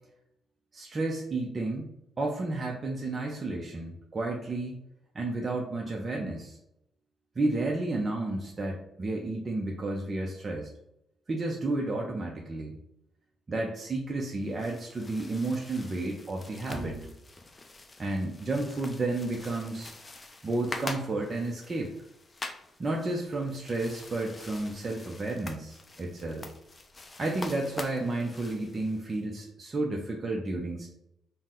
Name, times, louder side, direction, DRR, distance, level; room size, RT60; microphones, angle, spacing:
voice 1, 0.7-4.8 5.1-6.6 7.4-10.7 11.3-12.8 13.5-17.1 18.0-19.9 20.4-21.9 22.8-26.5 27.2-30.9, right 2 dB, 30° right, -1 dB, 0.5 m, -32 dB
sound 1, 14.4-29.2, left 2 dB, 25° left, 0.4 m, -45 dB
4.0 x 2.1 x 3.6 m, 0.80 s
cardioid pair, 90°, 0 cm